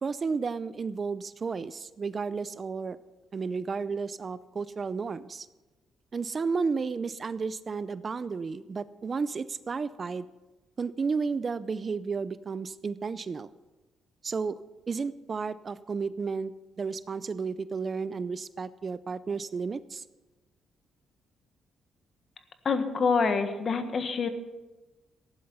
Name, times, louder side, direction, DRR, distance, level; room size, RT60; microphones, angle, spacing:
voice 1, 0.0-3.0 3.3-5.5 6.1-10.3 10.8-13.5 14.2-14.6 14.9-16.5 16.8-20.0, right 5 dB, 40° right, 16 dB, 0.5 m, -32 dB
voice 2, 22.6-24.3, left 5 dB, 45° left, 9 dB, 1.5 m, -26 dB
15.0 x 11.0 x 5.6 m, 1.1 s
cardioid pair, 90°, 0 cm